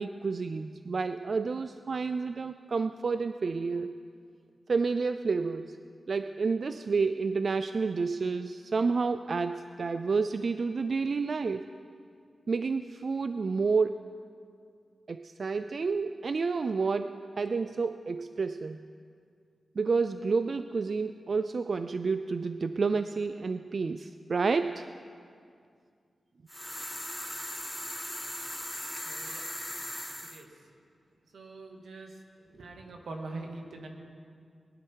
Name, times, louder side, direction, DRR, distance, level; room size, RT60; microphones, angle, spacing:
voice 1, 0.0-4.0 4.7-5.8 6.1-11.7 12.5-14.1 15.1-18.8 19.8-24.9, right 4 dB, 55° right, 10 dB, 0.4 m, -30 dB
sound 1, 26.5-30.4, left 1 dB, 5° left, 0.8 m, -38 dB
voice 2, 29.0-29.5 30.2-30.5 31.3-32.2 32.5-33.9, right 2 dB, 90° right, 2 dB, 2.0 m, -43 dB
22.0 x 11.0 x 4.7 m, 2.3 s
wide cardioid pair, 95°, 0 cm